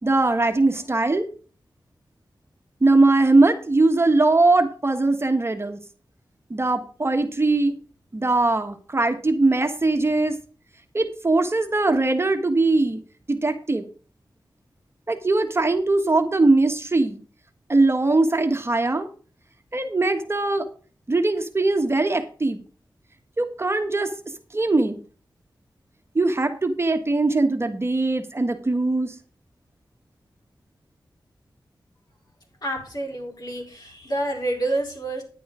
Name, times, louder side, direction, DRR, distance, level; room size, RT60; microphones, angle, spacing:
voice 1, 0.0-1.3 2.8-5.8 6.5-7.8 8.1-10.4 10.9-13.0 13.3-13.8 15.1-17.2 17.7-19.1 19.7-20.7 21.1-22.6 23.4-24.1 24.5-25.0 26.1-29.2, right 2 dB, 35° right, 6 dB, 1.4 m, -21 dB
voice 2, 32.6-35.2, right 1 dB, 55° left, 0 dB, 5.0 m, -28 dB
10.5 x 9.2 x 4.9 m, 0.39 s
wide cardioid pair, 80°, 8 cm